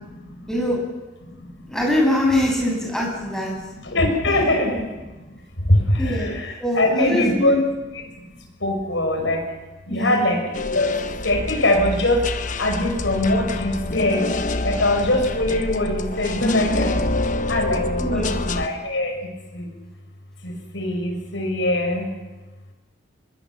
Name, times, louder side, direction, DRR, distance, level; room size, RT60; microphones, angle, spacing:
voice 1, 1.7-3.5 6.0-6.3 6.6-7.6 9.9-10.2 18.0-18.4, left 1 dB, 5° left, -2 dB, 7.2 m, -23 dB
voice 2, 3.9-4.9 5.7-7.6 8.6-9.4 9.9-10.4 10.7-10.9 11.2-12.2 12.6-14.3 14.6-17.0 17.5-19.1 19.5-19.6 20.4-22.1, left 1 dB, 70° left, 3 dB, 5.8 m, -22 dB
sound 1, 10.5-18.7, left 2 dB, 40° left, 1.1 m, -26 dB
25.0 x 21.5 x 7.4 m, 1.2 s
head